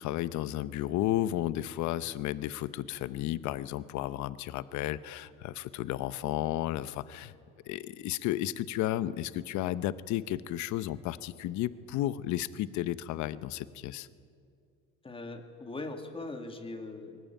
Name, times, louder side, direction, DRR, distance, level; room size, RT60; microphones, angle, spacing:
voice 1, 0.0-7.3 7.7-14.1, left 14 dB, 65° left, 16 dB, 0.8 m, -33 dB
voice 2, 15.0-17.2, left 2 dB, 15° left, 5 dB, 2.1 m, -41 dB
21.0 x 19.0 x 9.1 m, 2.4 s
cardioid pair, 125°, 31 cm